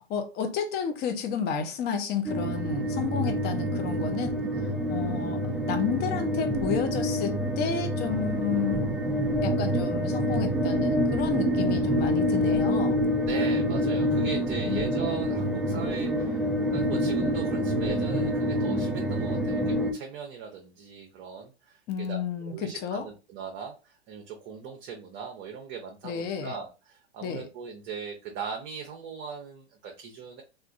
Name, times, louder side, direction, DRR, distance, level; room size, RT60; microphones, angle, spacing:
voice 1, 0.1-4.4 4.9-5.4 5.7-8.8 9.4-13.0 14.7-14.8 21.9-23.0 26.0-26.5 27.2-27.5, left 6 dB, 30° left, 0.7 m, -31 dB
sound 1, 2.3-19.9, equal, ahead, 0.3 m, -27 dB
voice 2, 13.2-16.4 16.7-30.4, right 6 dB, 35° right, 0.8 m, -39 dB
3.5 x 2.5 x 2.4 m
hypercardioid pair, 105°, 33 cm